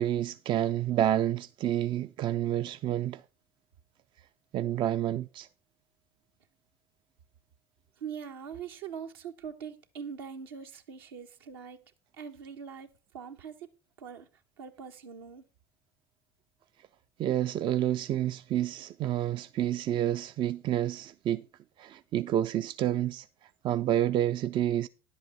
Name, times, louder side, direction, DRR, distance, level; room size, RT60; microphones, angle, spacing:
voice 1, 0.0-3.2 4.5-5.5 17.2-21.5 21.8-23.3 23.6-24.9, right 12 dB, 40° right, 0.4 m, -29 dB
voice 2, 8.0-11.8 12.2-13.7 14.0-14.3 14.6-15.5, right 7 dB, 75° right, 1.1 m, -42 dB
10.5 x 8.0 x 4.1 m
hypercardioid pair, 70°, 12 cm